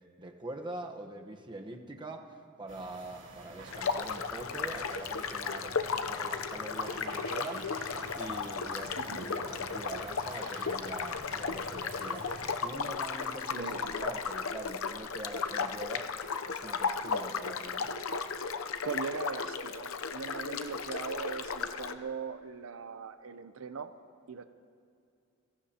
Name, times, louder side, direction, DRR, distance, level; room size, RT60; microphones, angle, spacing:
voice 1, 0.2-12.3 12.6-16.1 16.5-17.9, right 2 dB, 25° right, 3 dB, 1.1 m, -44 dB
sound 1, 2.7-12.5, right 2 dB, 65° right, 2.5 m, -48 dB
sound 2, 3.7-21.9, left 5 dB, 90° left, 0.7 m, -35 dB
voice 2, 9.0-9.3 13.5-13.9 18.8-23.9 24.3-24.4, right 5 dB, 85° right, 10 dB, 0.6 m, -40 dB
28.5 x 17.5 x 2.9 m, 2.4 s
head